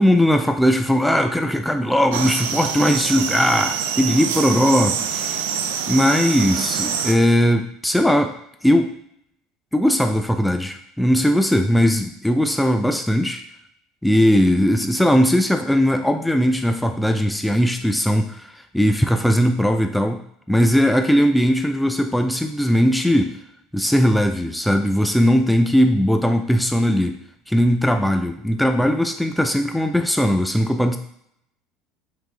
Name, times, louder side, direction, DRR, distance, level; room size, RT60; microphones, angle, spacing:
voice 1, 0.0-5.5 5.9-8.3 8.6-8.9 9.7-13.4 14.0-20.2 20.5-23.4 23.7-31.0, equal, 5° left, 6 dB, 0.4 m, -19 dB
sound 1, 2.1-7.1, right 7 dB, 80° right, 0.4 m, -25 dB
3.4 x 3.2 x 3.6 m, 0.73 s
hypercardioid pair, 80°, 0 cm